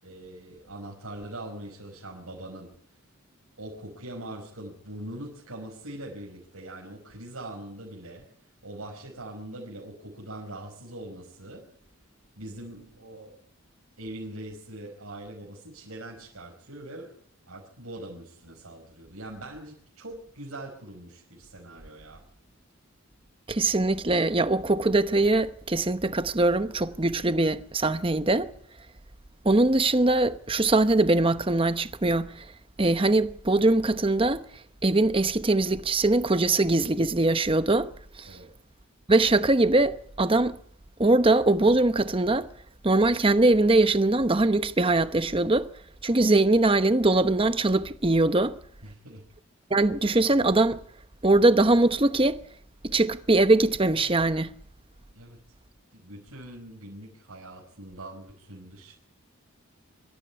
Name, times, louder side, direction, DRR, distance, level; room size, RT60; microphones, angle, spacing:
voice 1, 0.0-2.8 3.6-11.7 12.4-13.4 14.0-17.2 17.5-22.3 38.3-38.5 48.8-49.2 55.1-55.4 55.9-58.9, right 1 dB, 90° right, 5.3 m, -42 dB
voice 2, 23.5-28.5 29.4-32.5 32.8-34.4 34.8-37.9 38.2-38.3 39.1-40.5 41.0-42.5 42.8-45.7 46.0-48.6 49.7-50.8 51.2-52.4 52.8-54.5, right 2 dB, 25° right, 0.9 m, -22 dB
24.5 x 13.5 x 8.6 m
head